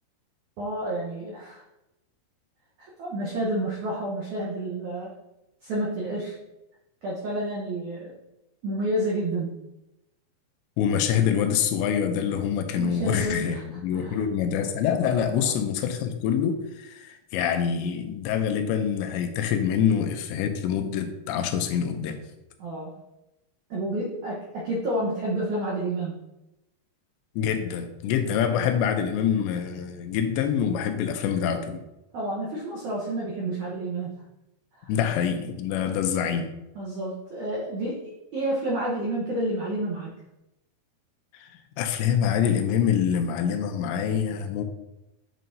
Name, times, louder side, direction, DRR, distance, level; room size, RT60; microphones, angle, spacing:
voice 1, 0.6-1.6 2.8-5.1 5.6-6.3 7.0-8.2 8.6-9.5 12.7-13.6 13.9-14.2 15.3-15.5 22.6-23.0 23.7-26.2 32.1-34.2 36.7-40.1, right 1 dB, 80° right, -5 dB, 1.7 m, -30 dB
voice 2, 10.8-22.2 27.4-31.8 34.9-36.5 41.4-41.5 41.8-44.6, left 8 dB, 85° left, 7 dB, 2.9 m, -25 dB
9.2 x 5.4 x 2.7 m, 0.94 s
omnidirectional pair, 5.1 m